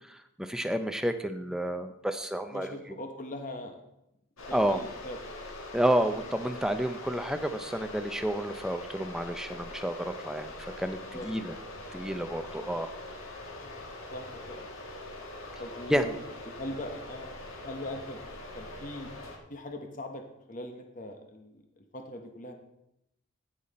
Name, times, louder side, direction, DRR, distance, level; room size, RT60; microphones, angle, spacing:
voice 1, 0.1-2.8 4.5-4.8 5.7-11.5 11.9-12.9 15.9-16.0, equal, 5° right, 8 dB, 0.5 m, -30 dB
voice 2, 2.5-3.8 4.5-5.3 11.1-11.3 13.6-14.7 15.6-16.2 16.5-17.3 17.6-18.2 18.5-19.1 19.5-22.5, left 1 dB, 40° left, 4 dB, 1.0 m, -41 dB
sound 1, 4.4-19.4, left 2 dB, 90° left, 1.7 m, -43 dB
15.5 x 5.7 x 4.2 m, 0.83 s
head